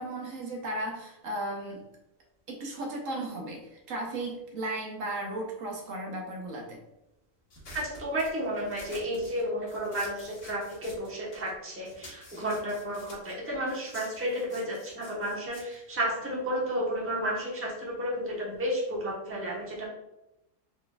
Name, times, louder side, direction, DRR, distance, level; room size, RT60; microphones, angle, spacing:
voice 1, 0.0-1.8 2.5-6.8, right 1 dB, 75° right, 0 dB, 1.2 m, -35 dB
sound 1, 7.5-11.6 11.8-16.7, left 1 dB, 65° left, 1.7 m, -50 dB
voice 2, 7.7-19.9, equal, 10° right, -4 dB, 0.9 m, -32 dB
4.3 x 3.9 x 2.2 m, 0.92 s
omnidirectional pair, 1.4 m